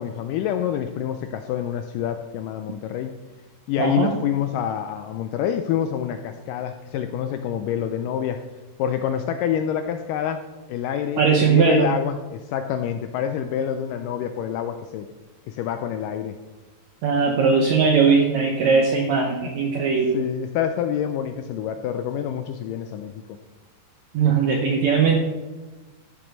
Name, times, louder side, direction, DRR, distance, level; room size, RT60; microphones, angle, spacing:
voice 1, 0.0-3.1 3.7-8.4 8.8-10.4 10.7-15.1 15.5-16.4 19.4-19.5 20.1-23.1, left 9 dB, 90° left, 7 dB, 1.9 m, -27 dB
voice 2, 3.8-4.1 11.2-11.9 17.0-20.2 24.1-25.2, right 5 dB, 75° right, 2 dB, 1.6 m, -19 dB
13.5 x 6.8 x 5.3 m, 1.2 s
omnidirectional pair, 4.5 m